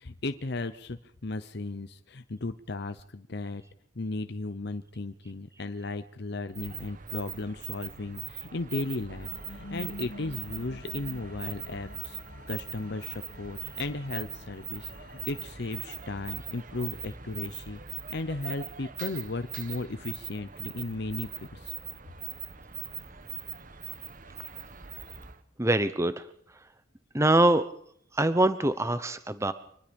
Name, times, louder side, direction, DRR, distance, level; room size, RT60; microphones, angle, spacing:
voice 1, 0.0-3.6 4.0-12.2 12.5-17.8 18.1-21.7, left 2 dB, 55° left, 10 dB, 0.8 m, -35 dB
sound 1, 6.5-25.4, right 9 dB, 40° right, 1.2 m, -41 dB
sound 2, 9.2-15.5, left 1 dB, 85° left, 2.1 m, -47 dB
voice 2, 25.6-26.3 27.1-27.6 28.1-29.5, right 1 dB, 15° right, 11 dB, 0.9 m, -23 dB
25.5 x 20.0 x 5.4 m, 0.65 s
head